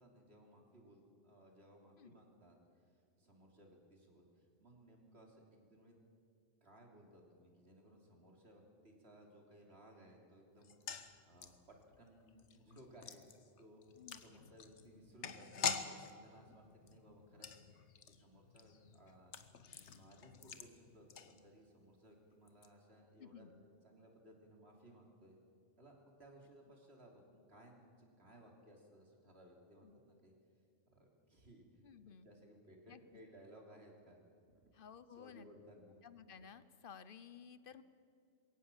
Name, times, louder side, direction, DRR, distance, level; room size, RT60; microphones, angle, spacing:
voice 1, 0.0-5.9 6.6-13.2 13.6-17.5 18.1-19.3 19.7-23.5 23.8-25.4 25.8-30.3 30.9-34.2 34.5-34.6 35.1-36.0, right 1 dB, 65° right, 1 dB, 3.4 m, -61 dB
sound 1, 10.6-21.8 22.1-22.2 22.5-22.7, left 6 dB, 80° left, 1.3 m, -46 dB
voice 2, 23.2-23.6 29.8-30.0 31.8-32.3 32.9-33.0 34.7-35.5 36.0-37.8, left 7 dB, 55° left, 15 dB, 1.0 m, -55 dB
22.0 x 17.5 x 7.3 m, 2.4 s
omnidirectional pair, 1.2 m